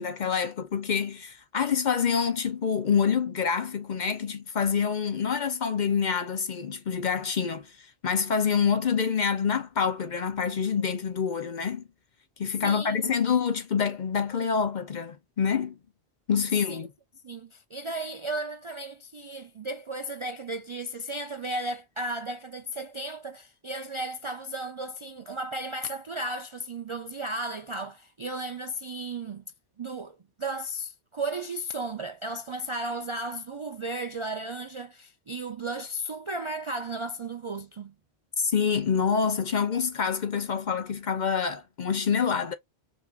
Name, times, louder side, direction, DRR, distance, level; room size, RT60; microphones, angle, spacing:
voice 1, 0.0-11.8 12.4-15.8 16.3-16.9 38.4-42.5, left 6 dB, 50° left, 0.7 m, -27 dB
voice 2, 12.6-13.1 16.7-16.8 17.2-29.4 29.8-37.9, right 2 dB, 45° right, 0.4 m, -35 dB
5.3 x 2.7 x 2.4 m
omnidirectional pair, 1.1 m